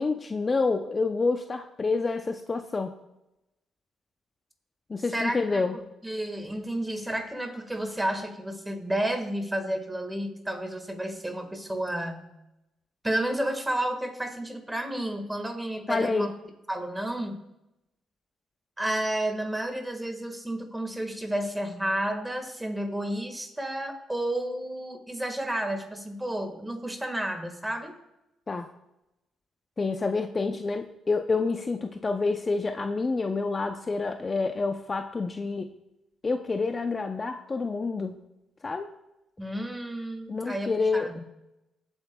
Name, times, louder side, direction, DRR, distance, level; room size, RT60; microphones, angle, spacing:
voice 1, 0.0-2.9 4.9-5.8 15.9-16.3 28.5-28.7 29.8-35.7 36.2-38.2 38.6-38.9 40.3-41.2, left 4 dB, 30° left, 6 dB, 0.6 m, -28 dB
voice 2, 5.1-5.6 6.0-12.3 13.0-16.3 16.7-17.4 18.8-28.0 39.4-41.2, right 1 dB, 10° right, 6 dB, 1.6 m, -31 dB
21.5 x 8.0 x 2.3 m, 0.92 s
cardioid pair, 90°, 0 cm